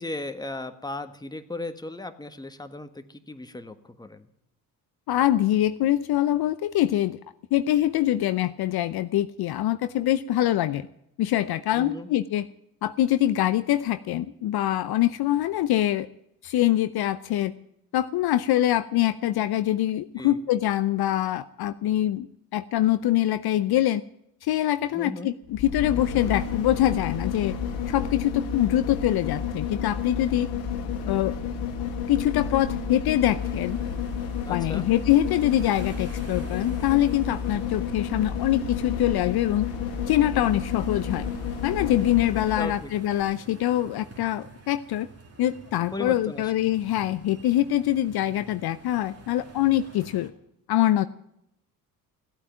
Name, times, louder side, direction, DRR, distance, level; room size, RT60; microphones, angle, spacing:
voice 1, 0.0-4.3 11.7-12.1 20.2-20.4 24.9-25.3 34.4-34.9 42.6-42.9 45.9-46.5, left 2 dB, 10° left, 8 dB, 1.4 m, -36 dB
voice 2, 5.1-7.2 7.5-10.9 11.2-12.5 12.8-16.1 16.4-17.5 17.9-22.3 22.5-24.0 24.4-27.6 27.9-30.5 31.1-31.3 32.1-33.8 34.5-39.7 40.1-41.3 41.6-45.1 45.4-50.3 50.7-51.1, left 13 dB, 55° left, 13 dB, 0.7 m, -24 dB
sound 1, 25.4-42.8 43.2-43.3, left 7 dB, 80° left, 1.7 m, -31 dB
sound 2, 33.4-50.3, right 3 dB, 35° right, 2.7 m, -49 dB
14.5 x 8.5 x 9.4 m, 0.79 s
hypercardioid pair, 55°, 44 cm